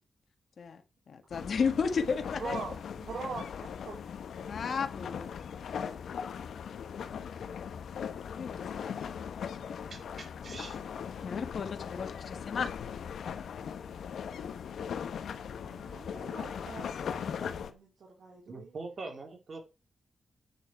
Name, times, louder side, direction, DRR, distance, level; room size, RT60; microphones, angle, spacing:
voice 1, 1.1-2.6 4.5-5.3 7.2-7.3 8.4-9.0 11.2-12.7, left 5 dB, 65° left, 7 dB, 1.9 m, -33 dB
sound 1, 1.3-17.7, left 7 dB, 85° left, 1.1 m, -39 dB
voice 2, 2.4-4.0 10.7-10.8 15.6-18.7, right 4 dB, 70° right, -1 dB, 3.5 m, -43 dB
voice 3, 9.9-10.8 18.5-19.6, right 3 dB, 50° right, 4 dB, 3.8 m, -43 dB
9.2 x 7.1 x 4.7 m, 0.30 s
cardioid pair, 100°, 0 cm